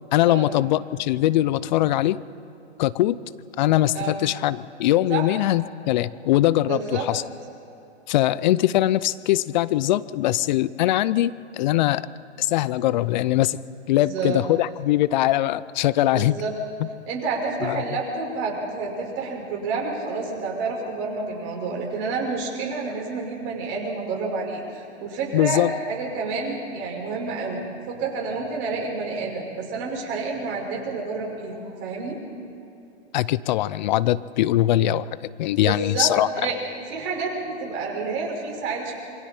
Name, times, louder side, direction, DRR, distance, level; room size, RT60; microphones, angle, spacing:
voice 1, 0.1-2.2 2.8-3.2 3.6-7.2 8.1-12.1 12.4-13.6 13.9-16.4 16.8-16.9 17.6-17.8 25.3-25.7 33.1-35.1 35.4-36.3, left 14 dB, 40° left, 18 dB, 0.6 m, -21 dB
voice 2, 6.6-7.1 13.9-14.4 16.1-16.5 17.1-27.6 27.9-32.2 35.5-36.5 36.9-38.9, right 4 dB, 35° right, -1 dB, 5.5 m, -29 dB
27.0 x 23.5 x 4.4 m, 2.8 s
hypercardioid pair, 130°, 34 cm